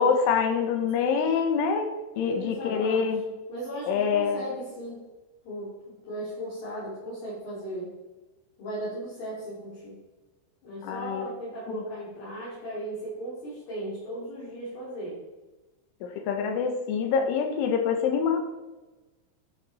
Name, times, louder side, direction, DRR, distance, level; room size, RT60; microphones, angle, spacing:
voice 1, 0.0-1.9 2.2-3.2 3.9-4.4 10.8-11.3 11.7-11.8 16.0-18.4, left 6 dB, 85° left, 5 dB, 3.6 m, -25 dB
voice 2, 2.1-3.1 3.5-5.0 5.4-7.9 8.6-10.0 10.6-15.2, right 1 dB, 60° left, -9 dB, 5.1 m, -36 dB
12.0 x 6.8 x 4.4 m, 1.1 s
omnidirectional pair, 5.6 m